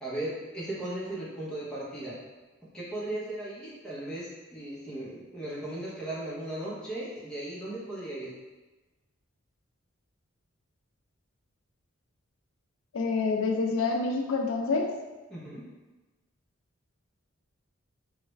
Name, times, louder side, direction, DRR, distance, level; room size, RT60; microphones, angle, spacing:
voice 1, 0.0-2.2 2.7-8.3 15.3-15.7, right 1 dB, 5° left, -8 dB, 0.7 m, -37 dB
voice 2, 12.9-14.9, left 4 dB, 75° left, 2 dB, 0.4 m, -27 dB
3.1 x 2.4 x 3.1 m, 1.2 s
head